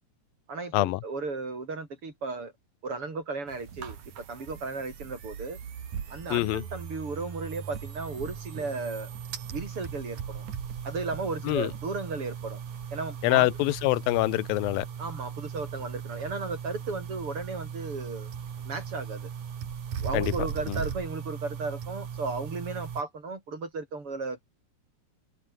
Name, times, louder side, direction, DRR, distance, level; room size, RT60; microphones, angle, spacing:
voice 1, 0.5-2.5 2.8-5.6 6.1-9.1 9.5-10.4 10.8-12.6 12.9-13.5 15.0-18.3 18.7-19.3 20.0-24.4, right 3 dB, 40° right, 5.3 m, -35 dB
sound 1, 3.5-23.0, right 8 dB, 60° right, 3.8 m, -38 dB
voice 2, 6.3-6.6 11.4-11.7 13.2-14.9 20.1-20.3 20.7-20.8, left 19 dB, 90° left, 2.5 m, -25 dB
omnidirectional pair, 4.0 m